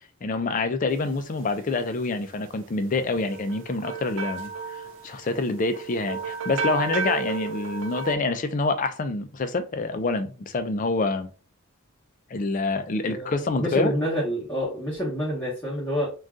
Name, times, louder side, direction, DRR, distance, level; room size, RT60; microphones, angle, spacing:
voice 1, 0.2-11.3 12.3-13.9, left 3 dB, 40° left, 0.4 m, -27 dB
sound 1, 3.1-8.2, right 6 dB, 65° right, 0.4 m, -33 dB
voice 2, 13.1-16.1, equal, 15° left, 1.0 m, -28 dB
2.6 x 2.3 x 3.6 m
head